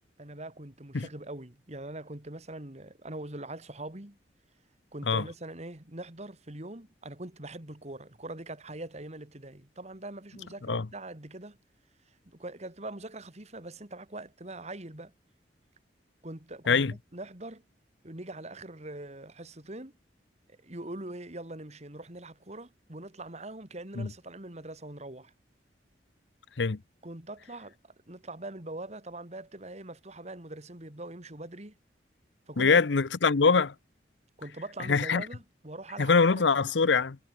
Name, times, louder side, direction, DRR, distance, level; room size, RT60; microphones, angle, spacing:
voice 1, 0.2-4.2 4.9-11.6 12.3-15.1 16.2-17.6 18.0-19.9 20.5-25.3 27.0-31.7 32.5-32.8 34.4-36.5, right 2 dB, 40° right, 2.5 m, -42 dB
voice 2, 32.6-33.7 34.9-35.2 36.0-37.2, left 4 dB, 80° left, 0.7 m, -23 dB
head